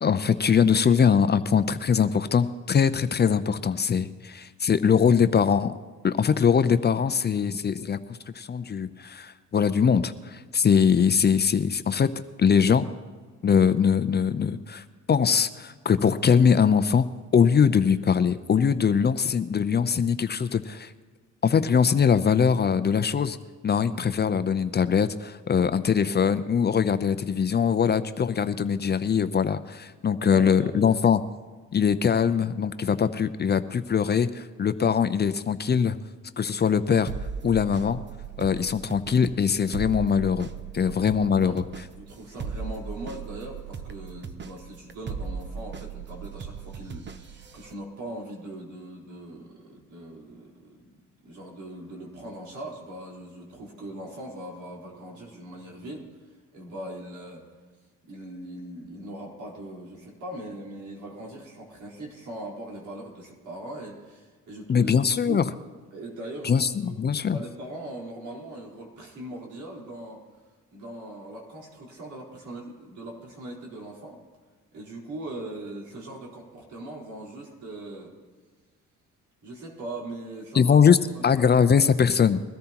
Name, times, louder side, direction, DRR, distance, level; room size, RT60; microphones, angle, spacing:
voice 1, 0.0-5.7 6.0-8.0 8.4-12.1 12.4-12.9 13.4-17.1 17.3-20.9 21.4-23.4 23.6-31.2 31.7-36.0 36.4-37.1 37.4-38.0 38.4-40.5 40.7-41.6 64.7-65.4 66.4-67.4 80.5-81.0 81.2-82.4, left 7 dB, 35° left, 12 dB, 0.6 m, -22 dB
voice 2, 30.1-31.0 40.8-41.0 41.4-41.6 42.0-56.1 56.5-57.4 58.0-64.9 65.3-65.4 65.9-67.0 67.3-70.2 70.7-74.2 74.7-78.1 79.4-80.8 81.1-81.4, right 1 dB, 75° right, -3 dB, 4.2 m, -40 dB
sound 1, 37.1-47.7, right 6 dB, 40° right, 0.8 m, -37 dB
22.0 x 13.5 x 3.0 m, 1.4 s
cardioid pair, 90°, 30 cm